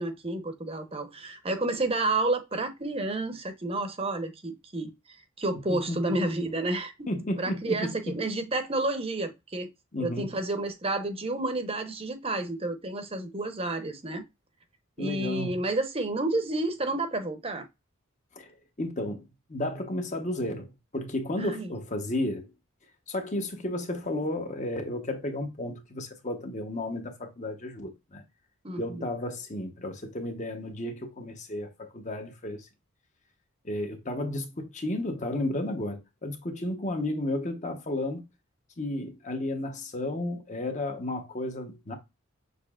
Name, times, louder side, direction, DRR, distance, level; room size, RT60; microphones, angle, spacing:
voice 1, 0.0-4.9 5.4-6.9 7.4-9.7 10.0-14.2 15.0-17.7 21.4-21.7 28.6-29.0, right 2 dB, 25° right, 0.8 m, -30 dB
voice 2, 7.1-8.2 9.9-10.3 15.0-15.5 18.3-22.5 23.1-28.2 28.8-32.7 33.6-38.2 38.8-41.9, left 1 dB, 35° left, 1.0 m, -33 dB
6.6 x 3.2 x 2.4 m
head